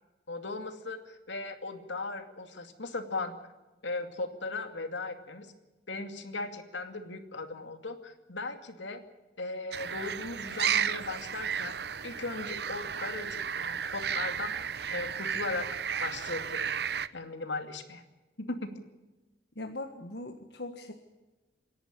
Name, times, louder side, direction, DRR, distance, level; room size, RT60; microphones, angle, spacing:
voice 1, 0.3-3.4 3.8-5.5 5.9-9.0 9.4-11.8 12.0-14.5 14.9-15.7 16.0-16.7 17.1-18.0 18.4-18.7, left 3 dB, 85° left, 7 dB, 2.4 m, -37 dB
sound 1, 9.7-17.1, right 7 dB, 60° right, 0.7 m, -33 dB
voice 2, 19.5-20.9, left 2 dB, 65° left, 4 dB, 1.6 m, -40 dB
27.0 x 11.0 x 9.9 m, 1.1 s
head